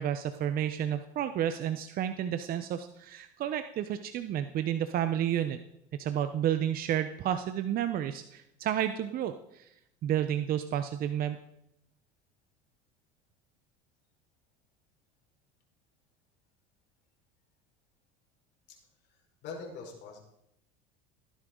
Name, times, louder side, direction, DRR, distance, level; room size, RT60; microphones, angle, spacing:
voice 1, 0.0-5.6 5.9-9.7 10.0-11.4, right 10 dB, 45° right, 10 dB, 0.8 m, -31 dB
voice 2, 19.1-20.2, left 4 dB, 55° left, 0 dB, 4.9 m, -44 dB
17.0 x 10.0 x 3.8 m, 0.82 s
supercardioid pair, 95°, 21 cm